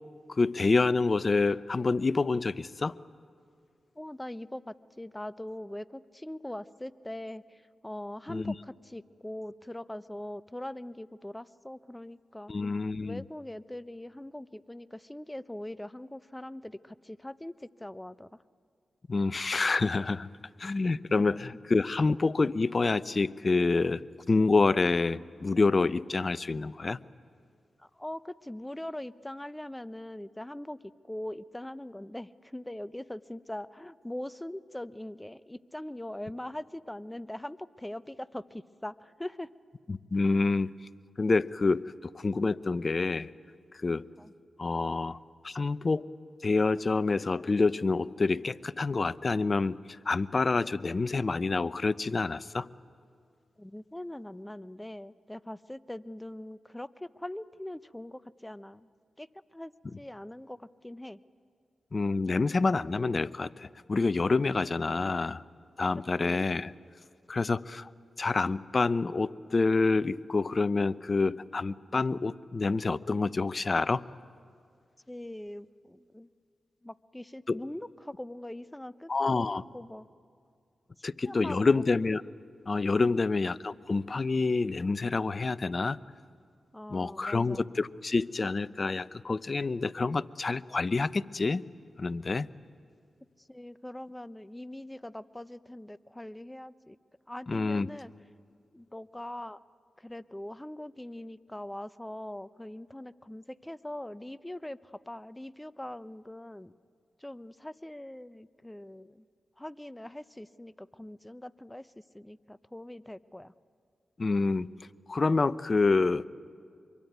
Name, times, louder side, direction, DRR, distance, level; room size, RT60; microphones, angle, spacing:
voice 1, 0.3-2.9 8.3-8.5 12.5-13.2 19.1-20.3 20.6-24.0 24.3-27.0 39.9-40.7 41.2-43.3 43.8-44.0 44.6-45.2 45.4-46.1 46.4-49.8 50.1-52.7 61.9-65.4 65.8-66.7 67.3-67.9 68.2-74.0 77.5-77.6 79.1-79.6 81.0-82.2 82.7-86.0 86.9-91.6 92.0-92.5 97.5-97.9 114.2-114.7 115.1-116.3, left 3 dB, 45° left, 17 dB, 0.7 m, -27 dB
voice 2, 4.0-12.5 13.0-18.3 27.8-30.8 31.0-39.5 40.2-40.4 44.2-44.3 53.6-58.9 59.2-61.2 62.3-62.5 75.1-76.3 76.8-79.3 79.7-80.1 81.2-81.8 83.0-83.3 86.7-87.7 93.4-97.0 97.3-98.1 98.7-99.6 100.0-106.7 107.2-109.3 109.6-113.5, left 1 dB, 10° left, 16 dB, 0.8 m, -42 dB
25.5 x 22.5 x 9.4 m, 2.3 s
supercardioid pair, 45°, 0 cm